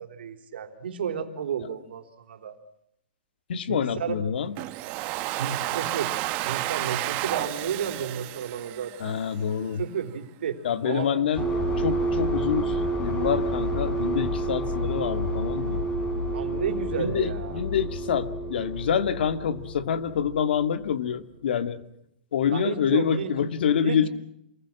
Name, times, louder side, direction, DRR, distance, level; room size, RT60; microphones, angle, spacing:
voice 1, 0.0-2.6 3.7-4.2 5.3-6.1 6.4-9.2 9.8-10.6 10.8-11.3 16.3-17.6 22.5-23.3 23.8-24.1, right 7 dB, 75° right, 6 dB, 3.9 m, -32 dB
voice 2, 3.5-4.5 9.0-9.8 10.6-11.5 11.8-15.8 17.0-21.8 22.3-24.1, left 8 dB, 70° left, 10 dB, 2.0 m, -26 dB
Domestic sounds home sounds, 4.6-9.5, right 17 dB, 30° right, 1.3 m, -31 dB
sound 1, 11.4-20.8, right 1 dB, 15° left, 5.3 m, -29 dB
28.0 x 20.5 x 7.6 m, 0.77 s
hypercardioid pair, 155°, 6 cm